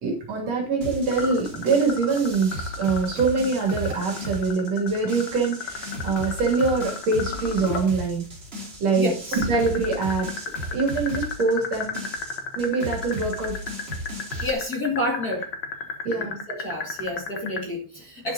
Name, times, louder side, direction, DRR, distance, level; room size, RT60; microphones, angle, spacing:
voice 1, 0.0-8.2 8.8-10.5 10.7-12.1 12.6-13.5 16.0-16.4, right 4 dB, 60° right, 3.8 m, -24 dB
sound 1, 0.8-14.5, equal, 20° right, 2.6 m, -36 dB
sound 2, 1.1-7.9 9.3-17.6, left 5 dB, 50° left, 1.7 m, -32 dB
voice 2, 9.0-9.5 14.4-15.5 16.1-18.3, left 1 dB, 35° left, 2.3 m, -29 dB
11.5 x 6.4 x 4.0 m
omnidirectional pair, 3.5 m